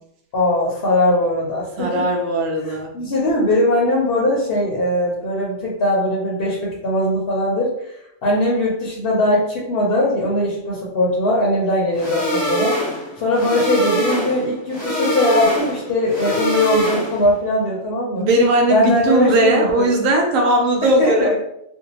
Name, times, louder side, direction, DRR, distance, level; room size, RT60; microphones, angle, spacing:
voice 1, 0.3-2.0 2.7-7.7 8.2-12.8 13.2-18.3 18.7-19.9 21.0-21.3, left 1 dB, 55° left, -4 dB, 0.8 m, -20 dB
voice 2, 1.8-2.9 18.2-21.4, right 1 dB, 85° right, 1 dB, 1.0 m, -18 dB
sound 1, 11.9-17.3, equal, 25° left, 0.8 m, -23 dB
2.6 x 2.1 x 2.8 m, 0.80 s
omnidirectional pair, 1.3 m